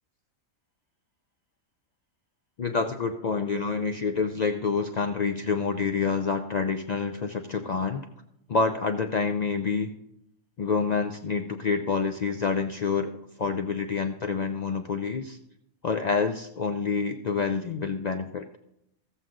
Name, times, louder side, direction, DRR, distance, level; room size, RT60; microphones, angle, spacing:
voice 1, 2.6-8.1 8.5-9.9 10.6-13.1 13.4-15.4 15.8-18.5, left 5 dB, 90° left, 7 dB, 0.3 m, -27 dB
14.5 x 7.7 x 3.7 m, 0.80 s
omnidirectional pair, 1.4 m